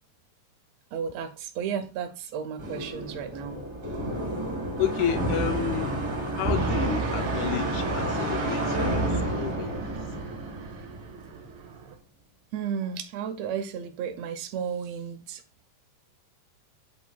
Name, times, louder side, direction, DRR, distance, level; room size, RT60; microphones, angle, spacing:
voice 1, 0.9-3.7 3.9-4.0 9.7-9.8 11.3-11.5 12.5-15.4, right 7 dB, 85° right, 1.5 m, -34 dB
sound 1, 2.6-11.4, right 1 dB, 25° right, 2.3 m, -30 dB
voice 2, 4.8-6.0 6.4-10.0, left 9 dB, 80° left, 1.7 m, -31 dB
Fixed-wing aircraft airplane, 6.5-11.9, right 5 dB, 60° right, 2.3 m, -38 dB
8.5 x 7.8 x 2.2 m
omnidirectional pair, 3.9 m